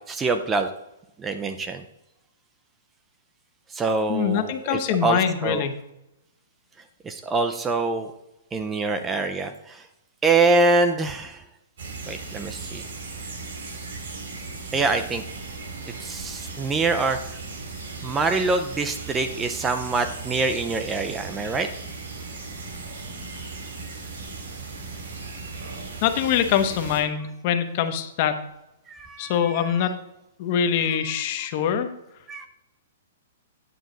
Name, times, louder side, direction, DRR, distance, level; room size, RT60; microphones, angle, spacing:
voice 1, 0.1-0.7 1.2-1.8 3.7-5.7 7.0-8.1 8.5-9.8 10.2-11.4 12.1-12.8 14.7-15.2 16.0-17.2 18.0-21.7 28.9-29.7 30.8-30.9 32.3-32.5, right 3 dB, 10° right, 8 dB, 0.4 m, -25 dB
voice 2, 4.1-5.7 26.0-28.4 29.2-29.9 30.4-31.9, left 8 dB, 40° left, 8 dB, 0.8 m, -24 dB
sound 1, 11.8-27.0, right 3 dB, 70° right, 2.6 m, -37 dB
9.2 x 6.1 x 3.9 m, 0.88 s
hypercardioid pair, 160°, 0 cm